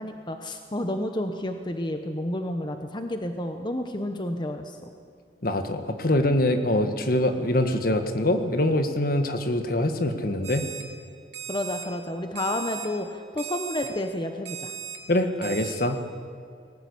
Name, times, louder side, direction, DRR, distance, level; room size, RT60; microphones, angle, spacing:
voice 1, 0.0-4.9 11.5-14.7, left 1 dB, 25° left, 6 dB, 1.0 m, -30 dB
voice 2, 5.4-10.7 15.1-16.0, left 1 dB, 55° left, 7 dB, 1.6 m, -24 dB
Alarm, 10.4-10.8 11.3-11.8 12.4-12.9 13.4-13.9 14.4-15.0 15.4-15.7, right 9 dB, 85° right, 3.4 m, -37 dB
20.0 x 18.0 x 8.5 m, 2.2 s
head